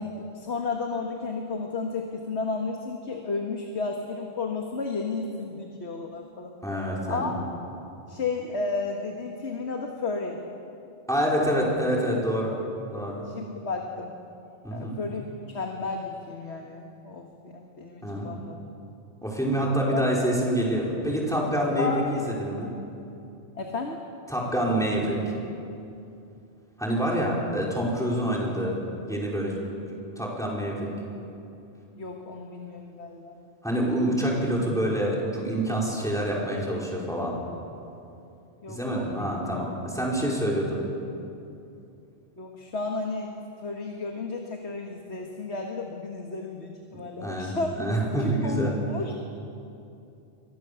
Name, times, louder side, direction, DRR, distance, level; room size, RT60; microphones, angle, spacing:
voice 1, 0.0-6.5 7.1-7.3 8.1-10.4 13.2-14.1 14.7-15.2 15.5-18.6 19.9-20.0 21.8-22.1 23.5-24.0 32.0-33.4 38.6-39.3 42.4-43.3 43.6-47.8 48.2-49.2, left 3 dB, 70° left, 2 dB, 2.0 m, -33 dB
voice 2, 6.6-7.3 11.1-12.6 12.9-13.2 14.6-15.0 18.0-18.3 19.2-22.7 24.3-25.2 26.8-28.8 29.1-29.5 30.2-30.9 33.6-37.4 38.7-40.8 47.2-48.7, right 1 dB, 5° left, -4 dB, 5.4 m, -26 dB
29.0 x 24.0 x 7.1 m, 2.7 s
omnidirectional pair, 1.2 m